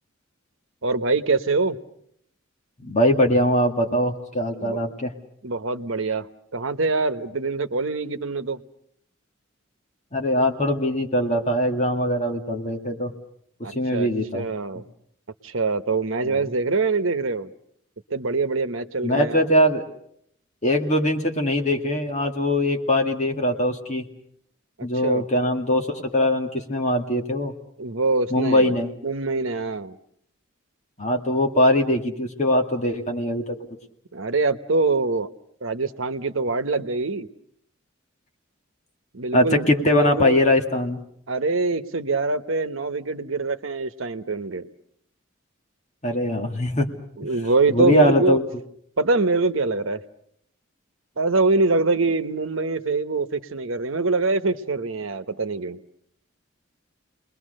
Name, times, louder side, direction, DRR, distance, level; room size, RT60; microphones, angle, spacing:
voice 1, 0.8-1.8 4.6-4.8 5.4-6.3 6.5-8.6 13.6-14.8 15.4-17.5 18.1-19.4 24.8-25.2 27.8-28.7 29.0-30.0 34.1-35.3 35.6-37.3 39.1-40.4 41.3-44.7 47.2-48.4 49.0-50.0 51.2-55.8, right 3 dB, 75° right, 10 dB, 1.1 m, -24 dB
voice 2, 2.8-5.1 10.1-13.1 13.8-14.5 16.2-16.5 19.0-19.8 20.6-24.0 24.8-27.5 28.3-28.9 31.0-33.6 39.3-41.0 46.0-46.9 47.7-48.4, left 1 dB, 35° left, 3 dB, 2.1 m, -21 dB
30.0 x 21.5 x 6.6 m, 0.69 s
head